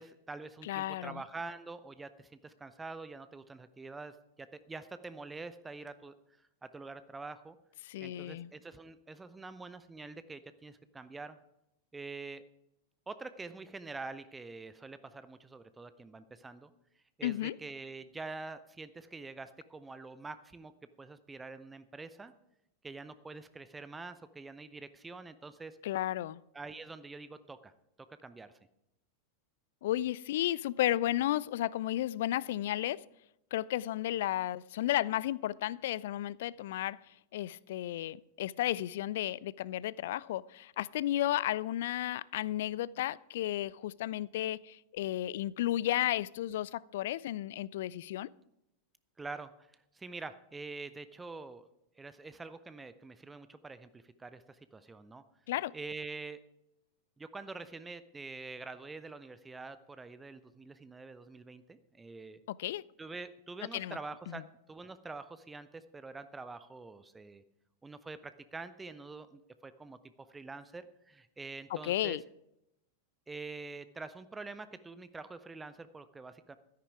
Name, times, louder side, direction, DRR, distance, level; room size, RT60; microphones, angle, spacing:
voice 1, 0.0-6.1 6.6-7.6 8.0-11.4 11.9-12.4 13.1-16.7 17.2-20.7 21.0-22.3 22.8-25.8 26.5-27.7 28.0-28.6 49.2-49.7 49.9-51.7 52.0-55.2 55.7-56.4 57.2-62.4 63.0-67.4 67.8-72.2 73.3-76.6, right 3 dB, 10° right, 0.7 m, -46 dB
voice 2, 0.6-1.2 7.9-8.5 17.2-17.5 25.8-26.4 29.8-33.0 33.5-37.0 37.3-48.3 55.5-55.7 62.5-62.8 63.7-64.0 64.3-64.4 71.8-72.2, left 13 dB, 55° left, 0.4 m, -33 dB
13.0 x 10.5 x 4.7 m
figure-of-eight pair, 90°, 0 cm